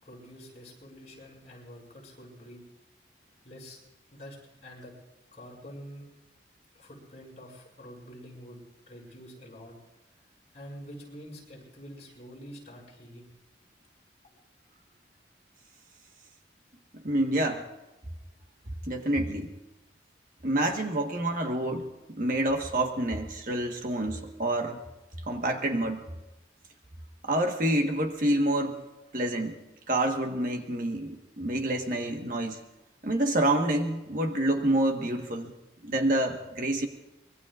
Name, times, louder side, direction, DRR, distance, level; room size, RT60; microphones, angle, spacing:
voice 1, 0.0-2.6 3.4-3.8 4.1-4.4 4.6-4.9 5.3-6.1 6.7-9.7 10.5-13.3, equal, 40° left, -2 dB, 5.9 m, -47 dB
voice 2, 16.9-17.7 18.9-19.5 20.4-24.8 25.3-26.0 27.2-28.8 29.1-29.6 29.9-32.6 33.0-35.5 35.8-36.9, right 1 dB, 45° right, 3 dB, 1.3 m, -28 dB
24.5 x 22.0 x 2.5 m, 0.99 s
head